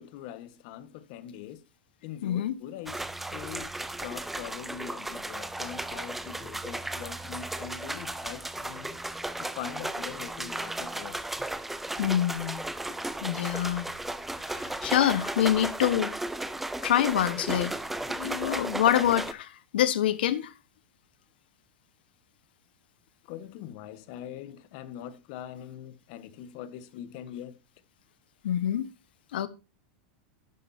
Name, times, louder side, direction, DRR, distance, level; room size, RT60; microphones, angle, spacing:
voice 1, 0.0-1.6 2.0-3.7 4.0-9.0 9.4-11.2 23.2-27.6, left 10 dB, 50° left, 1.2 m, -42 dB
voice 2, 2.2-2.5 12.0-12.6 13.2-13.9 14.5-16.2 16.8-17.7 18.1-20.5 28.4-28.9 29.3-29.5, left 11 dB, 85° left, 1.2 m, -26 dB
sound 1, 2.9-19.3, right 1 dB, 5° right, 0.6 m, -35 dB
11.5 x 11.0 x 2.7 m
supercardioid pair, 155°, 5 cm